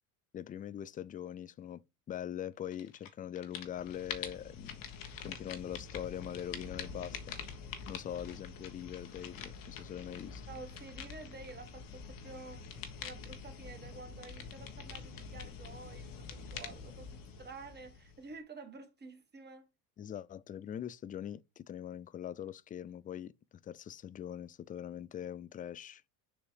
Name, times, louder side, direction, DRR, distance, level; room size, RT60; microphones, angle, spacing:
voice 1, 0.3-1.8 2.1-4.8 5.2-7.2 7.9-10.4 20.0-23.3 23.6-26.0, left 10 dB, 20° left, 0.3 m, -42 dB
sound 1, 2.7-3.1 3.4-18.4, left 6 dB, 50° left, 1.4 m, -46 dB
voice 2, 10.5-12.7 13.0-19.7, right 3 dB, 25° right, 1.7 m, -50 dB
7.1 x 2.9 x 4.8 m
supercardioid pair, 90°, 44 cm